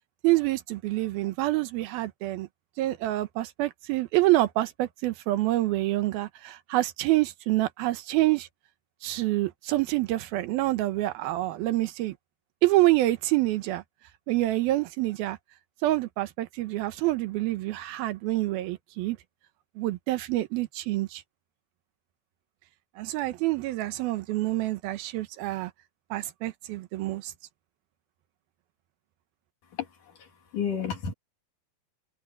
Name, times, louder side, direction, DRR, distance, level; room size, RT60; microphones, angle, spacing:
voice 1, 0.2-2.5 2.8-8.5 9.0-12.2 12.6-13.8 14.3-15.4 15.8-19.2 19.8-21.2 23.0-25.7 26.1-27.3, right 17 dB, 85° right, 2.8 m, -27 dB
voice 2, 29.7-31.1, left 7 dB, 60° left, 4.2 m, -32 dB
omnidirectional pair, 4.2 m